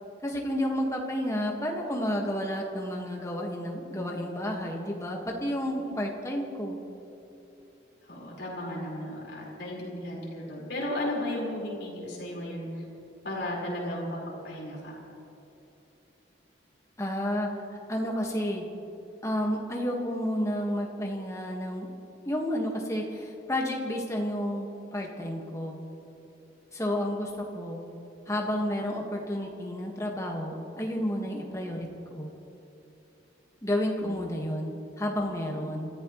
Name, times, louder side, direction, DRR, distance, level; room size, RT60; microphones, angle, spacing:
voice 1, 0.2-6.8 17.0-17.5 17.9-18.7 19.2-21.9 22.3-25.8 26.7-27.8 28.3-32.3 33.6-35.9, equal, 15° left, 0 dB, 1.8 m, -31 dB
voice 2, 8.0-12.8 13.2-14.2 14.4-15.0 34.0-34.1 35.5-35.6, left 1 dB, 60° left, -5 dB, 4.9 m, -35 dB
29.5 x 14.5 x 3.2 m, 2.9 s
head